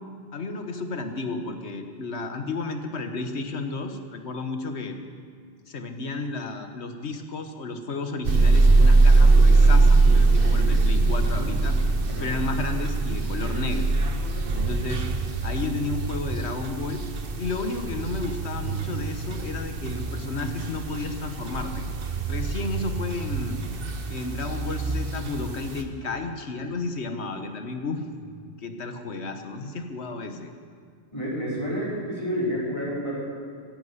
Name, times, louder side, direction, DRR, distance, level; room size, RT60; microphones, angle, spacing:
voice 1, 0.3-5.0 5.7-11.7 12.2-13.9 14.5-15.0 15.4-17.0 17.4-21.9 22.3-23.6 24.1-28.0 28.6-30.5, left 3 dB, 85° left, 6 dB, 1.5 m, -32 dB
sound 1, 8.2-25.8, right 3 dB, 60° right, 1.3 m, -22 dB
voice 2, 31.1-33.2, equal, 25° left, -7 dB, 4.9 m, -29 dB
15.5 x 11.0 x 8.1 m, 2.1 s
omnidirectional pair, 1.1 m